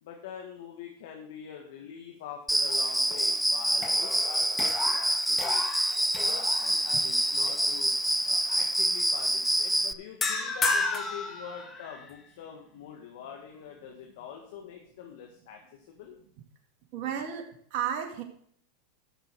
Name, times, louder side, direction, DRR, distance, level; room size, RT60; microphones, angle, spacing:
voice 1, 0.0-5.6 6.2-7.9 8.3-16.2, left 8 dB, 70° left, 2 dB, 1.8 m, -44 dB
Cricket, 2.5-9.9, right 1 dB, 5° right, 0.5 m, -26 dB
sound 1, 2.7-3.4 3.7-7.0 7.5-7.7 10.2-12.1, left 3 dB, 20° left, 1.9 m, -33 dB
voice 2, 16.9-18.2, right 8 dB, 55° right, 2 dB, 2.1 m, -33 dB
13.0 x 6.8 x 4.8 m, 0.62 s
hypercardioid pair, 105°, 0 cm